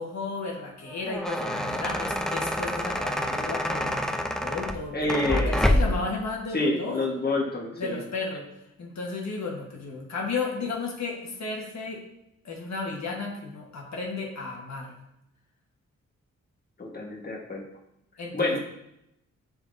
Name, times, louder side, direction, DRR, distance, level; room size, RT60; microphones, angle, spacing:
voice 1, 0.0-5.0 5.2-7.0 7.8-8.5 8.8-12.0 12.4-14.9 18.2-18.6, left 3 dB, 70° left, -1 dB, 1.5 m, -33 dB
sound 1, 0.9-6.1, left 1 dB, ahead, 0.5 m, -27 dB
voice 2, 4.9-5.9 6.5-8.0 16.8-17.6 18.3-18.6, left 2 dB, 35° left, -1 dB, 1.5 m, -28 dB
11.0 x 3.8 x 2.7 m, 0.82 s
cardioid pair, 75°, 29 cm